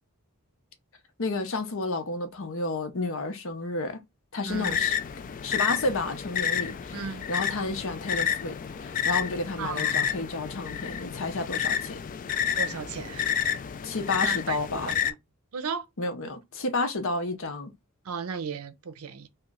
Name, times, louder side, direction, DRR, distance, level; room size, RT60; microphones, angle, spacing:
voice 1, 1.2-4.0 4.3-5.0 5.4-12.0 13.8-14.9 16.0-17.7, left 2 dB, 70° left, 0.8 m, -31 dB
sound 1, 4.5-15.1, left 8 dB, 40° left, 0.3 m, -30 dB
voice 2, 4.5-4.8 6.9-7.2 9.6-10.1 12.6-13.3 14.2-15.1 15.5-15.8 18.0-19.3, right 6 dB, 90° right, 0.6 m, -35 dB
3.1 x 2.3 x 3.6 m
head